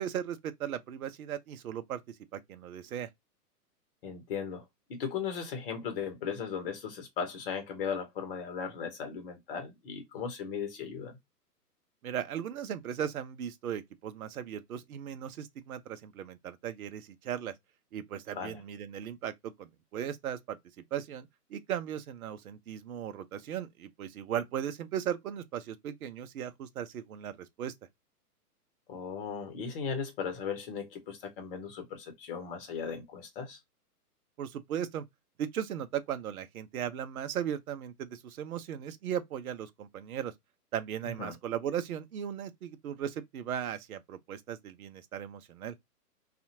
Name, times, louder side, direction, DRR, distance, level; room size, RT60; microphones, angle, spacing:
voice 1, 0.0-2.0 2.3-3.1 12.0-17.5 17.9-20.6 20.9-27.3 27.6-27.7 34.4-35.0 35.4-40.3 40.7-45.7, right 9 dB, 65° right, 0.6 m, -37 dB
voice 2, 4.0-4.6 4.9-11.2 18.3-18.6 28.9-33.6 41.2-41.4, left 6 dB, 35° left, 1.0 m, -37 dB
2.7 x 2.4 x 2.5 m
figure-of-eight pair, 130°, 47 cm